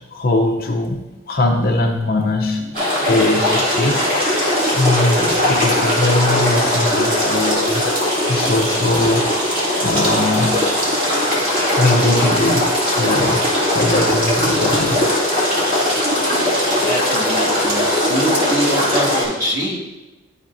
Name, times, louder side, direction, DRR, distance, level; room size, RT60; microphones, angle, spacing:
voice 1, 0.1-2.6 3.1-4.3 4.7-9.5 9.8-10.5 11.8-13.4 13.7-15.0, left 2 dB, 40° left, 1 dB, 0.6 m, -20 dB
sound 1, 2.7-19.2, left 1 dB, 40° right, 2.2 m, -19 dB
voice 2, 16.8-19.8, equal, 20° right, -8 dB, 1.8 m, -24 dB
11.5 x 5.0 x 2.6 m, 1.1 s
head